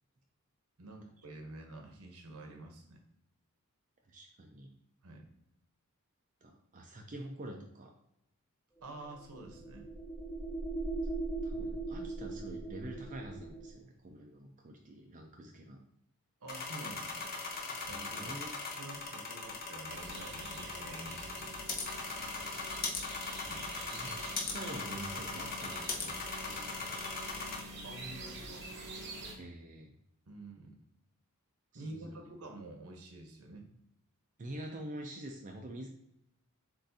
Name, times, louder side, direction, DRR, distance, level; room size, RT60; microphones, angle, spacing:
voice 1, 0.8-3.0 5.0-5.3 8.8-9.9 16.4-17.4 17.6-21.5 23.4-23.7 27.8-28.7 30.3-30.8 31.7-33.7, right 2 dB, 80° right, 3 dB, 1.0 m, -48 dB
voice 2, 4.1-4.7 6.4-7.9 11.4-15.8 18.2-18.5 22.2-22.8 23.9-24.2 24.5-27.0 29.4-29.9 31.7-32.3 34.4-35.9, right 1 dB, 35° right, 2 dB, 0.5 m, -46 dB
sound 1, 8.8-13.8, right 2 dB, 10° right, 0.8 m, -39 dB
sound 2, 16.5-27.6, left 4 dB, 40° left, 0.8 m, -40 dB
sound 3, 19.9-29.3, right 2 dB, 50° right, 1.0 m, -46 dB
7.4 x 2.5 x 2.7 m, 0.80 s
head